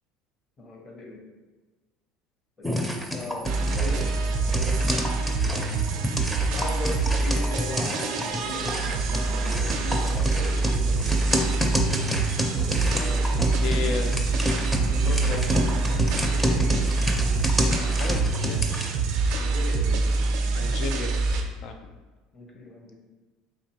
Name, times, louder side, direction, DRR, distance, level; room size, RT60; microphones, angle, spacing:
voice 1, 0.6-1.2 2.6-2.7 3.1-4.1 4.4-4.9 5.5-5.7 6.5-11.2 12.9-14.0 14.6-15.4 16.3-16.9 17.8-18.0 19.3-20.1 22.3-22.9, left 2 dB, 35° left, 0 dB, 1.0 m, -39 dB
sound 1, 2.6-18.9, equal, ahead, 0.6 m, -29 dB
sound 2, 3.4-21.4, right 3 dB, 65° right, 0.6 m, -25 dB
voice 2, 13.6-14.2 15.1-15.4 17.6-18.7 20.5-21.9, left 4 dB, 60° left, 6 dB, 0.4 m, -34 dB
4.1 x 2.9 x 2.8 m, 1.3 s
hypercardioid pair, 85°, 0 cm